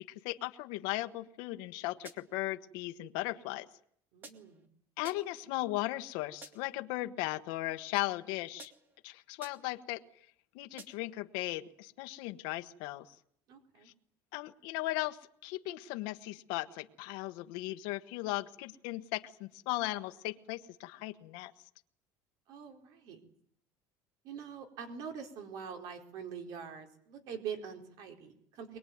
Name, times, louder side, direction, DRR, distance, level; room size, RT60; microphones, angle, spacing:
voice 1, 0.2-3.7 5.0-8.7 9.0-10.0 10.5-13.0 14.3-15.2 15.4-21.5, left 18 dB, 65° left, 7 dB, 1.3 m, -37 dB
sound 1, 2.1-2.5 4.2-4.7 5.0-5.5 6.4-6.8 8.6-9.0 9.4-9.8 10.8-11.2, right 3 dB, 25° right, 2.1 m, -53 dB
voice 2, 4.1-4.7 13.5-13.9 22.5-23.2 24.2-28.8, right 7 dB, 50° right, 5 dB, 4.5 m, -44 dB
22.5 x 22.0 x 9.5 m, 0.66 s
cardioid pair, 175°, 8 cm